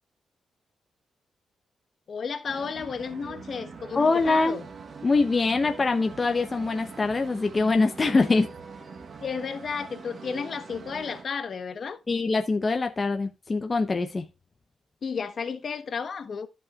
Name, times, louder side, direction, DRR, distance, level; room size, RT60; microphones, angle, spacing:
voice 1, 2.1-4.6 8.1-8.2 9.2-12.0 15.0-16.5, left 5 dB, 50° left, 1.2 m, -33 dB
sound 1, 2.5-11.2, right 4 dB, 45° right, 1.2 m, -43 dB
voice 2, 3.9-4.6 5.0-8.5 12.1-14.3, left 3 dB, 30° left, 0.9 m, -24 dB
14.0 x 5.5 x 2.5 m
cardioid pair, 100°, 0 cm